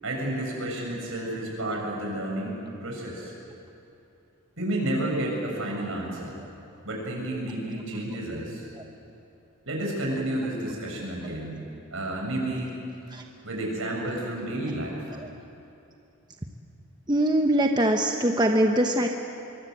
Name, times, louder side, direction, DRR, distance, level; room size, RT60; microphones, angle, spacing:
voice 1, 0.0-3.3 4.6-6.4 6.8-8.7 9.7-11.7 11.9-12.7 13.4-15.1, right 1 dB, 65° right, -1 dB, 7.4 m, -31 dB
voice 2, 17.1-19.1, right 1 dB, 20° right, 3 dB, 1.0 m, -22 dB
25.5 x 23.5 x 8.1 m, 2.8 s
head